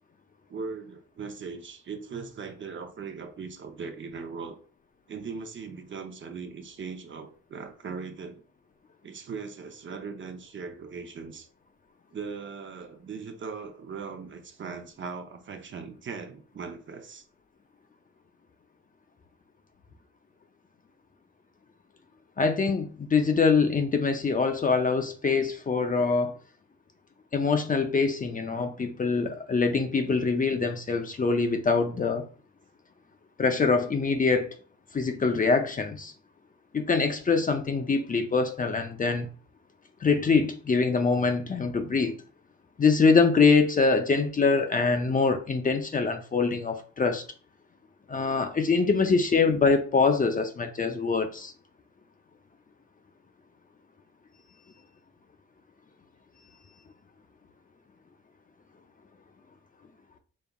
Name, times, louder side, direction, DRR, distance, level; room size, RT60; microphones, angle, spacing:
voice 1, 0.5-4.6 5.1-8.4 9.0-11.5 12.1-17.2 30.0-30.2 48.8-49.2, right 5 dB, 40° right, 0.7 m, -39 dB
voice 2, 22.4-26.4 27.3-32.2 33.4-34.6 34.9-36.1 36.7-39.3 40.0-42.2 42.8-47.2 48.1-51.5, left 4 dB, 30° left, 0.5 m, -24 dB
5.3 x 3.4 x 2.3 m
cardioid pair, 90°, 30 cm